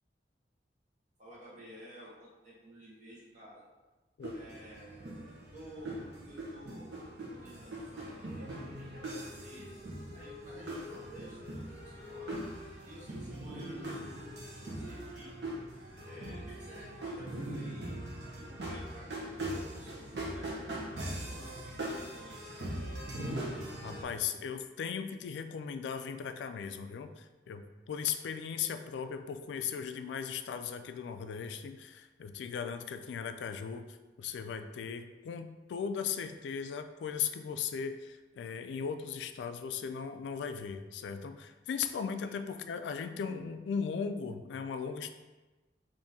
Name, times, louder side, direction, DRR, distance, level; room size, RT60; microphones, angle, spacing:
voice 1, 1.2-3.6 4.3-8.8 9.2-9.8 10.1-12.3 12.8-14.3 14.7-15.4 16.0-18.0 18.3-21.6 21.8-22.7 42.2-42.3, equal, 45° right, -7 dB, 1.1 m, -52 dB
sound 1, 4.2-24.0, right 1 dB, 75° right, 0.8 m, -41 dB
voice 2, 23.8-45.1, left 7 dB, 85° left, 9 dB, 0.3 m, -37 dB
3.6 x 2.6 x 4.1 m, 1.2 s
head